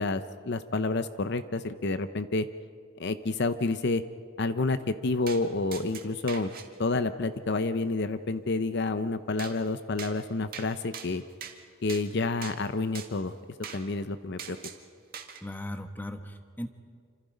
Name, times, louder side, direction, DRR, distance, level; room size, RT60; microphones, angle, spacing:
voice 1, 0.0-2.5 3.0-4.0 4.4-6.5 6.8-11.2 11.8-13.3 13.7-14.6, left 3 dB, 55° left, 11 dB, 0.7 m, -29 dB
sound 1, 5.3-5.4 5.7-6.7 9.4-9.5 10.0-10.1 10.5-10.7 10.9-11.6 11.9-12.0 12.4-12.6 13.0-13.1 13.6-13.8 14.4-14.8 15.1-15.4, right 8 dB, 45° right, 2.1 m, -41 dB
voice 2, 15.4-16.7, left 1 dB, 10° left, 7 dB, 1.2 m, -37 dB
28.0 x 26.5 x 5.2 m, 2.1 s
head